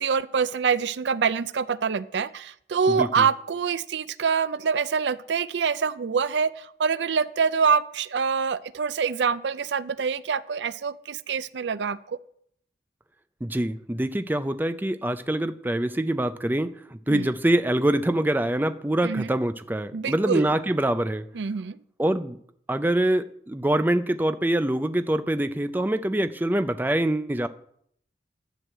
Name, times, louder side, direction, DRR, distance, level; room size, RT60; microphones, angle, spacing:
voice 1, 0.0-12.2 17.1-17.3 19.0-19.3 19.9-20.5 21.3-21.8, right 6 dB, 80° right, 17 dB, 0.5 m, -25 dB
voice 2, 2.9-3.3 13.4-21.2 22.0-22.4 22.7-27.5, right 1 dB, 10° right, 11 dB, 0.4 m, -25 dB
11.0 x 6.3 x 7.6 m, 0.66 s
head